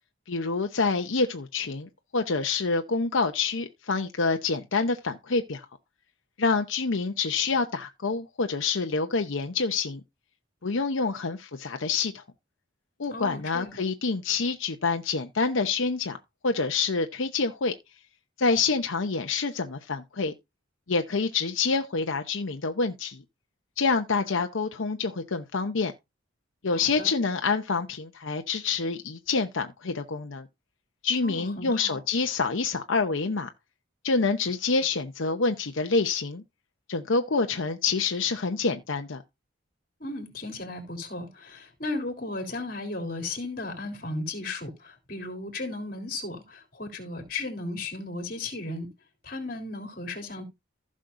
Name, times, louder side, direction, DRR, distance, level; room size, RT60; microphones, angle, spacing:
voice 1, 0.3-5.6 6.4-10.0 10.6-12.2 13.0-16.2 16.4-17.7 18.4-20.3 20.9-23.2 23.8-25.9 26.6-30.5 31.0-33.5 34.0-36.4 36.9-39.2, left 4 dB, 80° left, 0.8 m, -27 dB
voice 2, 13.1-13.8 26.7-27.1 31.2-32.0 40.0-48.9 49.2-50.4, left 2 dB, 50° left, 3.2 m, -35 dB
15.5 x 6.4 x 2.6 m
head